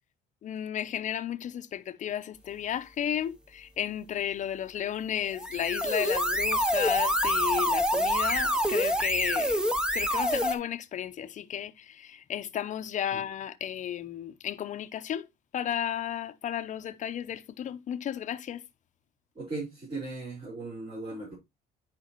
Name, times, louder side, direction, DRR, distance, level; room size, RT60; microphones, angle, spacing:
voice 1, 0.4-9.6 9.9-15.3 15.5-18.6, left 10 dB, 45° left, 0.7 m, -33 dB
sound 1, 5.3-10.5, equal, 5° right, 0.8 m, -26 dB
voice 2, 19.3-21.3, right 3 dB, 35° right, 4.4 m, -37 dB
9.3 x 5.1 x 3.0 m
cardioid pair, 110°, 17 cm